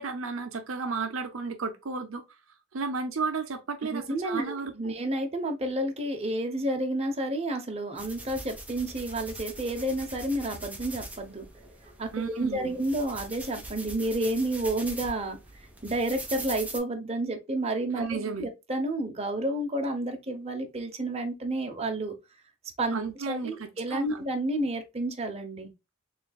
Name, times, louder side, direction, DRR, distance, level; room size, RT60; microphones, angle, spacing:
voice 1, 0.0-2.2 2.7-5.0 12.1-12.7 18.0-18.5 22.9-24.3, right 4 dB, 70° right, 0.7 m, -33 dB
voice 2, 3.9-11.4 12.0-15.4 15.8-18.1 18.4-22.1 22.8-23.0 23.3-25.7, right 1 dB, 30° right, 0.9 m, -30 dB
sound 1, 8.0-16.8, right 2 dB, 5° right, 0.8 m, -42 dB
4.4 x 3.3 x 2.3 m
head